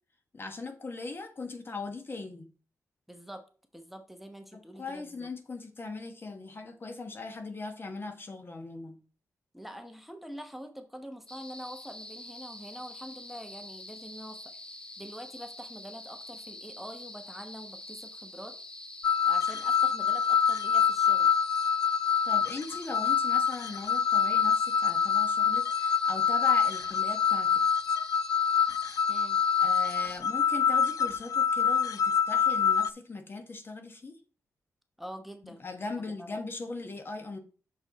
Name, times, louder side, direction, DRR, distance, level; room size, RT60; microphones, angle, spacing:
voice 1, 0.3-2.5 4.5-9.0 22.2-27.6 27.9-28.0 29.6-34.2 35.4-37.4, left 3 dB, 40° left, 7 dB, 1.2 m, -39 dB
voice 2, 3.1-3.4 3.7-5.3 9.5-18.5 19.2-21.3 29.1-29.4 35.0-35.6 35.9-36.4, equal, 5° right, 6 dB, 1.0 m, -45 dB
sound 1, 11.3-30.2, left 1 dB, 15° left, 0.6 m, -46 dB
sound 2, 19.0-32.9, left 7 dB, 75° left, 0.3 m, -26 dB
6.3 x 6.2 x 4.0 m, 0.38 s
cardioid pair, 90°, 6 cm